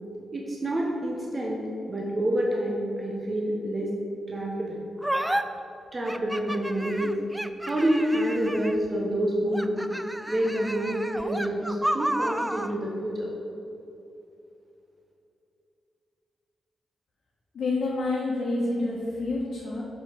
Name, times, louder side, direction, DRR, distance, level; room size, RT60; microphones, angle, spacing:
voice 1, 0.3-1.6 1.9-3.9 4.3-4.8 5.9-7.1 7.6-9.8 10.3-13.3, right 1 dB, 30° right, -2 dB, 1.0 m, -27 dB
sound 1, 5.0-5.4 6.1-8.9 9.5-12.7, right 1 dB, 10° right, 0.3 m, -31 dB
voice 2, 17.5-19.8, left 2 dB, 65° left, -5 dB, 1.2 m, -28 dB
5.6 x 5.2 x 6.1 m, 2.8 s
cardioid pair, 85°, 0 cm